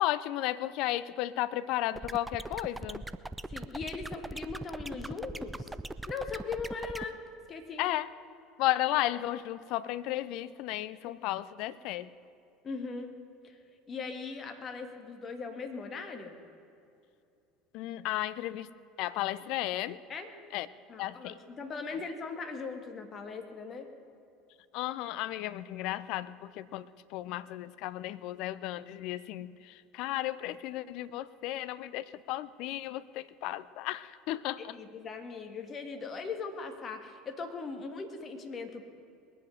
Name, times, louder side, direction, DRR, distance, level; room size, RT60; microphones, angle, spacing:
voice 1, 0.0-3.1 7.8-8.1 8.6-12.1 17.7-18.7 19.0-20.0 20.5-20.7 21.0-21.4 24.7-34.7, left 15 dB, 55° left, 16 dB, 0.5 m, -34 dB
sound 1, 2.0-7.0, right 2 dB, 10° right, 0.5 m, -40 dB
voice 2, 3.5-5.7 6.1-7.2 7.5-7.9 12.6-13.1 13.4-13.6 13.9-16.4 20.1-20.3 20.9-23.9 34.7-38.8, left 4 dB, 35° left, 5 dB, 1.6 m, -39 dB
21.0 x 7.9 x 6.3 m, 2.6 s
figure-of-eight pair, 70°, 0 cm